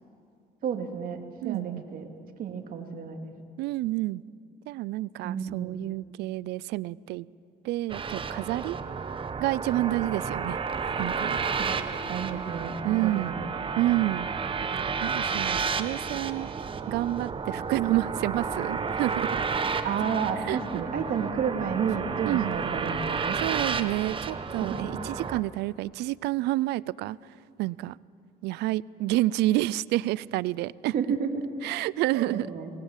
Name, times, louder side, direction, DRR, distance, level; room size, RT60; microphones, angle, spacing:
voice 1, 0.6-2.1 2.4-3.3 5.2-5.8 11.5-13.5 19.8-23.4 24.6-24.9 30.9-31.4 32.1-32.7, right 7 dB, 60° right, 4 dB, 2.5 m, -31 dB
voice 2, 1.4-1.8 3.6-4.2 4.7-7.3 7.6-8.8 9.4-10.6 10.9-11.4 12.8-13.3 13.8-14.3 15.0-16.5 16.9-19.3 20.5-20.6 22.3-22.5 23.4-27.2 27.6-28.0 28.4-30.9 31.6-32.5, right 17 dB, 85° right, 22 dB, 0.5 m, -29 dB
sound 1, 7.9-25.4, right 5 dB, 30° right, 1.1 m, -31 dB
24.5 x 20.5 x 7.4 m, 2.5 s
cardioid pair, 110°, 17 cm